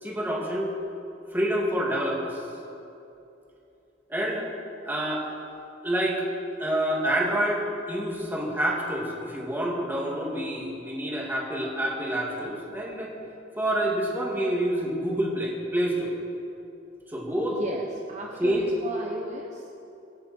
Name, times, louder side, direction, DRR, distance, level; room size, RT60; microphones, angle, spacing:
voice 1, 0.0-0.7 1.3-2.4 4.1-4.5 4.8-5.3 5.8-6.3 6.6-13.1 13.6-16.2 17.1-17.6 18.4-18.7, right 1 dB, 10° right, -3 dB, 2.4 m, -27 dB
voice 2, 17.5-19.7, right 2 dB, 40° right, 0 dB, 1.0 m, -36 dB
24.5 x 10.0 x 4.4 m, 2.8 s
head